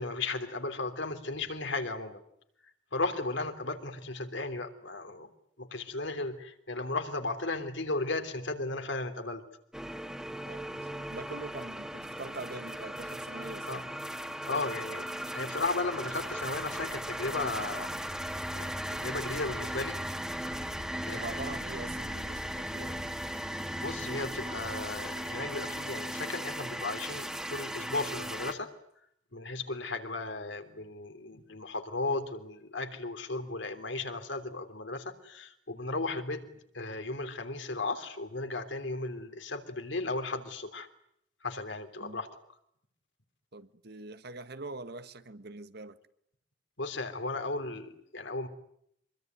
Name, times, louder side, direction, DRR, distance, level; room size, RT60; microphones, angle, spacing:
voice 1, 0.0-2.2 2.9-5.3 5.6-9.4 13.7-13.8 14.5-15.0 15.3-17.9 18.5-20.0 21.0-21.4 23.8-28.7 29.3-36.5 36.7-40.9 41.4-42.4 46.8-48.5, left 3 dB, 70° left, 3.3 m, -35 dB
sound 1, 9.7-28.5, equal, 5° right, 2.2 m, -37 dB
voice 2, 10.4-13.9 21.1-23.2 42.0-42.2 43.5-46.0, right 2 dB, 60° right, 1.5 m, -44 dB
25.0 x 23.0 x 9.4 m
head